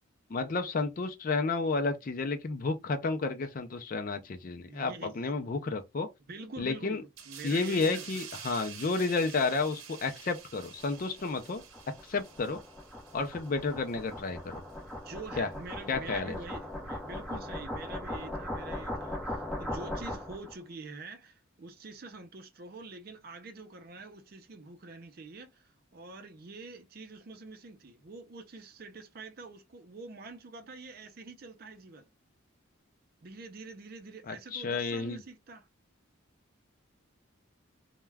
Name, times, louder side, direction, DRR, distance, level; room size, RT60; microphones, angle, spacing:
voice 1, 0.3-6.1 6.6-7.0 7.4-11.6 12.0-12.6 13.1-14.6 15.4-15.5 15.9-16.4 34.3-35.2, left 3 dB, 40° left, 0.4 m, -31 dB
voice 2, 4.7-5.3 6.3-8.1 15.0-32.1 33.2-35.7, right 3 dB, 45° right, 0.5 m, -46 dB
sound 1, 7.2-14.3 14.7-14.9, right 7 dB, 85° right, 0.7 m, -48 dB
sound 2, 10.8-20.5, left 1 dB, ahead, 0.8 m, -39 dB
2.3 x 2.2 x 3.2 m
head